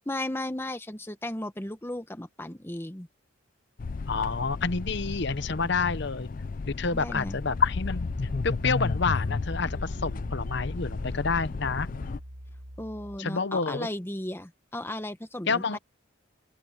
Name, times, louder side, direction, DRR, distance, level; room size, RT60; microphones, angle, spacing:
voice 1, 0.1-3.1 6.9-7.4 12.8-15.8, left 1 dB, 10° left, 1.0 m, -35 dB
sound 1, 3.8-12.2, left 4 dB, 40° left, 0.4 m, -32 dB
voice 2, 4.1-6.3 6.7-8.1 8.4-11.9 13.2-13.9 15.5-15.8, left 4 dB, 55° left, 0.9 m, -29 dB
Piano, 8.1-13.2, equal, 75° right, 6.0 m, -42 dB
open air
head